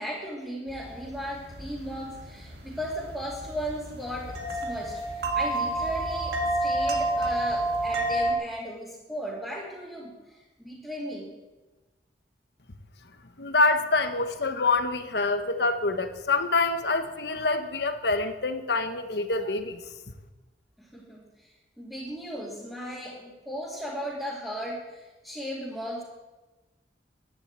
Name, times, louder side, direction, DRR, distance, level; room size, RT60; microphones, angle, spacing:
voice 1, 0.0-11.3 20.8-26.0, equal, ahead, -8 dB, 2.8 m, -36 dB
sound 1, 0.7-8.3, right 1 dB, 65° right, 2.1 m, -29 dB
voice 2, 13.4-19.8, left 3 dB, 65° left, 8 dB, 1.2 m, -26 dB
11.5 x 10.5 x 8.8 m, 1.1 s
head